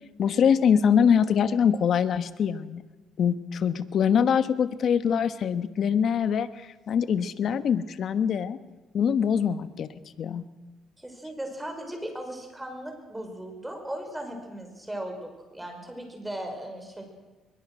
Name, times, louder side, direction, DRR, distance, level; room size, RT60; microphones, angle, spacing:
voice 1, 0.2-2.8 3.2-8.6 8.9-9.9 10.2-10.4, left 7 dB, 60° left, 12 dB, 1.3 m, -23 dB
voice 2, 11.0-17.0, right 1 dB, 10° right, 4 dB, 5.9 m, -37 dB
22.5 x 21.0 x 6.3 m, 1.2 s
cardioid pair, 90°, 0 cm